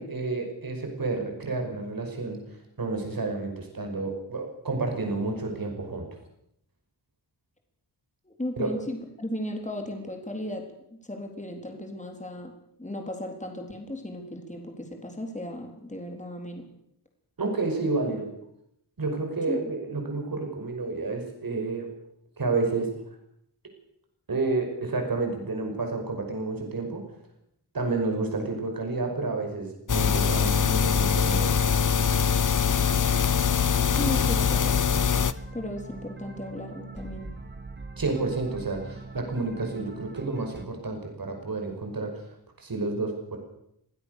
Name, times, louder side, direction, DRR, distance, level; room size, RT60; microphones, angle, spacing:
voice 1, 0.0-2.4 2.8-6.1 8.6-8.7 17.4-18.3 19.0-21.9 22.4-22.9 24.3-27.0 27.7-31.6 38.0-42.2 42.6-43.4, right 3 dB, 55° right, 3 dB, 5.8 m, -30 dB
voice 2, 8.2-10.6 10.9-12.5 12.8-16.7 19.5-19.7 33.9-34.8 35.5-37.3, left 1 dB, 15° left, 3 dB, 3.9 m, -35 dB
sound 1, 29.9-35.3, left 6 dB, 45° left, 0.9 m, -23 dB
sound 2, 33.8-40.6, right 3 dB, 25° right, 2.2 m, -42 dB
24.0 x 16.0 x 6.8 m, 0.77 s
wide cardioid pair, 105°, 42 cm